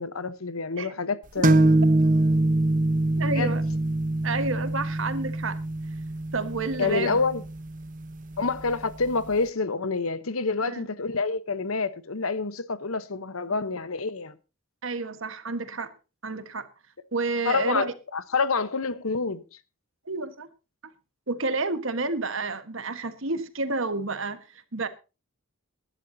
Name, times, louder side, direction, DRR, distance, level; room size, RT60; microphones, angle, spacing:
voice 1, 0.0-1.6 3.3-3.5 6.8-7.4 8.4-14.3 17.4-19.4, left 4 dB, 80° left, 1.0 m, -27 dB
sound 1, 1.4-8.9, right 2 dB, 40° right, 0.9 m, -24 dB
voice 2, 3.2-3.6 4.2-5.6 6.3-7.2 10.7-10.9 14.8-15.9 16.2-16.7 17.1-17.9 20.0-20.5 21.3-24.4 24.7-24.9, right 3 dB, 65° right, 1.4 m, -30 dB
21.0 x 11.0 x 2.8 m
head